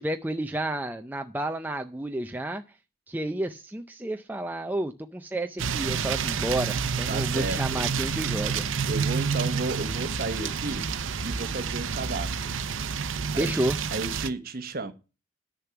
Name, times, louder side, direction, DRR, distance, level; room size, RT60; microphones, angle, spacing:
voice 1, 0.0-2.6 3.1-8.6 13.3-13.8, right 1 dB, 10° right, 0.4 m, -31 dB
sound 1, 5.6-14.3, right 6 dB, 75° right, 0.7 m, -29 dB
voice 2, 7.1-7.9 8.9-10.8 11.2-12.5 13.3-13.6 13.9-14.9, right 2 dB, 45° right, 1.1 m, -33 dB
10.5 x 6.9 x 5.8 m
head